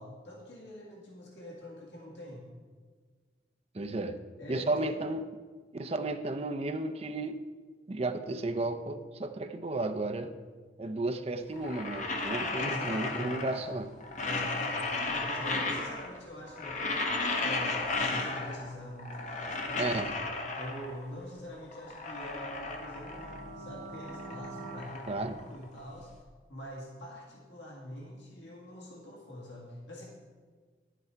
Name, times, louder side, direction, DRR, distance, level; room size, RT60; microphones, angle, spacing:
voice 1, 0.0-2.5 4.4-4.9 12.5-13.5 14.2-16.8 17.4-20.0 20.6-26.1 26.5-30.0, equal, 75° left, -3 dB, 2.0 m, -44 dB
voice 2, 3.7-4.2 4.5-5.2 5.7-7.4 7.9-10.3 10.8-13.9 19.8-20.2 25.1-25.3, right 2 dB, 35° right, 7 dB, 0.5 m, -33 dB
sound 1, 11.5-13.7 14.0-16.2 16.5-18.7 19.0-21.1 21.5-23.5 23.8-26.0, left 3 dB, 40° left, 1.0 m, -34 dB
sound 2, 22.2-24.8, right 2 dB, 75° right, 1.1 m, -45 dB
11.0 x 8.0 x 4.5 m, 1.5 s
head